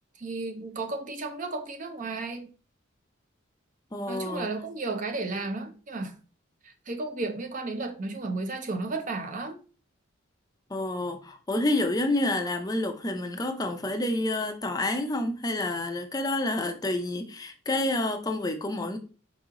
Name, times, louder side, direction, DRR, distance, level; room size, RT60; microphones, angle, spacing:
voice 1, 0.2-2.5 4.1-6.2 6.6-9.6, right 3 dB, 40° right, 0.6 m, -33 dB
voice 2, 3.9-4.5 10.7-19.0, left 1 dB, 20° left, 0.5 m, -29 dB
4.6 x 3.0 x 3.7 m
head